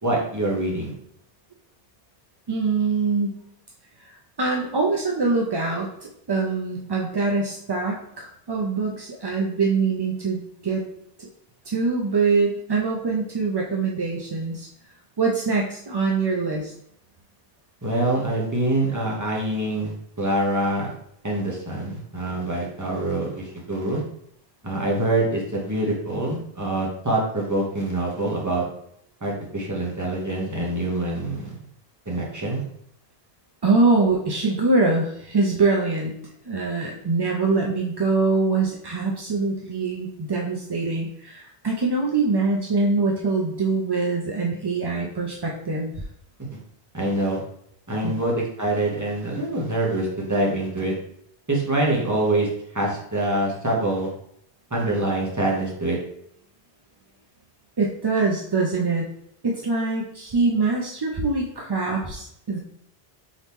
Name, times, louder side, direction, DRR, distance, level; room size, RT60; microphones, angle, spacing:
voice 1, 0.0-0.9 17.8-20.9 21.2-24.0 24.6-28.6 29.2-31.5 32.1-32.6 46.9-47.4 47.9-50.9 51.5-52.5 52.7-54.1 54.7-56.0, right 1 dB, 20° right, -3 dB, 1.0 m, -25 dB
voice 2, 2.5-3.4 4.4-5.9 6.3-10.8 11.2-11.3 11.7-14.7 15.2-16.7 33.6-36.1 36.5-45.9 48.0-48.1 57.8-59.1 59.4-62.6, right 3 dB, 40° right, -1 dB, 0.3 m, -23 dB
4.0 x 3.0 x 3.5 m, 0.70 s
omnidirectional pair, 1.0 m